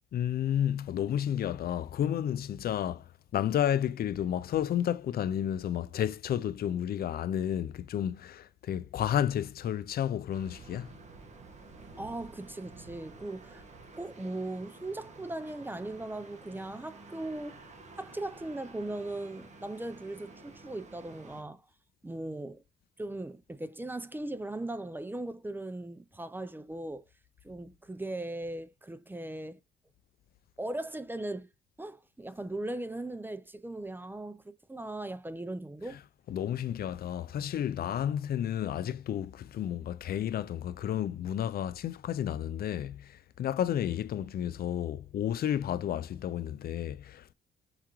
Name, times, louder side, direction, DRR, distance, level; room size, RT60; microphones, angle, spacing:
voice 1, 0.1-3.0 3.3-10.9 36.3-47.3, left 10 dB, 50° left, 0.4 m, -31 dB
sound 1, 10.3-21.4, right 3 dB, 35° right, 1.2 m, -51 dB
voice 2, 12.0-13.6 14.0-17.6 18.0-21.6 22.0-22.6 23.0-27.0 27.4-29.6 30.6-31.5 31.8-36.0, right 2 dB, 10° right, 0.4 m, -38 dB
4.8 x 3.5 x 3.0 m
cardioid pair, 90°, 20 cm